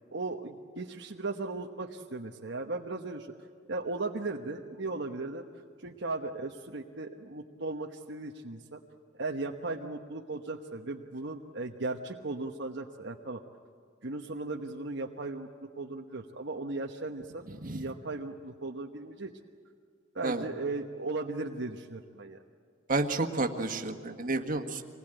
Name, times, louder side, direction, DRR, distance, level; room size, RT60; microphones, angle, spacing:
voice 1, 0.1-3.3 3.7-5.4 5.8-8.8 9.2-13.4 14.0-19.3 20.1-22.4, right 3 dB, 65° right, 1 dB, 1.1 m, -37 dB
voice 2, 22.9-24.8, right 2 dB, 45° right, 4 dB, 1.8 m, -30 dB
26.5 x 20.0 x 9.1 m, 2.2 s
head